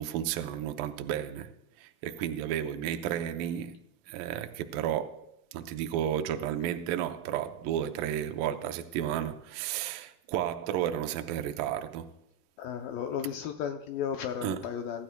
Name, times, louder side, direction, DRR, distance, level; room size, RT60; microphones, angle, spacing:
voice 1, 0.0-1.5 1.8-3.8 4.1-5.2 5.5-12.1 14.4-14.6, right 10 dB, 75° right, 2.3 m, -32 dB
voice 2, 12.6-15.0, left 8 dB, 75° left, 2.3 m, -34 dB
24.5 x 12.5 x 2.3 m
omnidirectional pair, 4.4 m